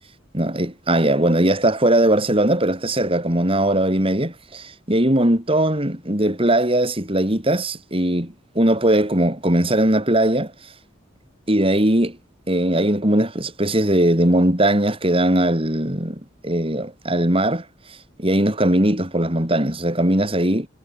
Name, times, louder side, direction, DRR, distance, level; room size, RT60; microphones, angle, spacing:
voice 1, 0.3-10.5 11.5-12.2 12.5-17.6 18.2-20.7, right 1 dB, 30° right, 4.7 m, -19 dB
head